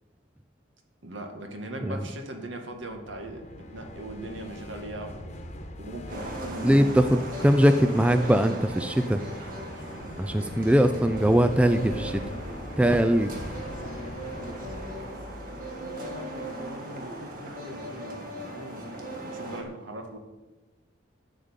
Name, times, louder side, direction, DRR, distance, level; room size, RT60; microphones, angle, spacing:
voice 1, 1.0-5.1 5.8-7.0 9.8-10.7 15.5-20.2, right 1 dB, 75° right, 4 dB, 1.9 m, -40 dB
sound 1, 2.7-16.7, left 1 dB, 35° left, 1.2 m, -42 dB
sound 2, 6.1-19.6, right 1 dB, 45° right, 2.1 m, -38 dB
voice 2, 6.6-9.2 10.2-12.2 12.8-13.3, equal, 5° right, 9 dB, 0.4 m, -21 dB
12.5 x 5.2 x 9.0 m, 1.1 s
head